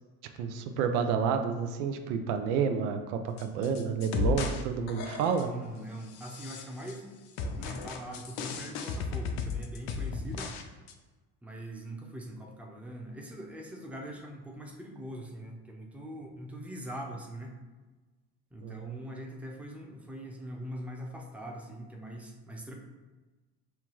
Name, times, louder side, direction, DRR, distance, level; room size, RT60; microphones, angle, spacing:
voice 1, 0.4-5.5 18.6-19.0, right 6 dB, 90° right, 6 dB, 0.6 m, -30 dB
sound 1, 3.4-4.6 4.9-5.6 6.1-7.0 7.4-10.6 10.9-11.0, left 4 dB, 60° left, 0.6 m, -35 dB
voice 2, 4.2-4.6 5.4-7.1 7.6-10.5 11.4-17.6 18.5-22.7, right 1 dB, 5° right, 0 dB, 0.6 m, -42 dB
5.7 x 2.3 x 3.0 m, 1.2 s
supercardioid pair, 85°, 44 cm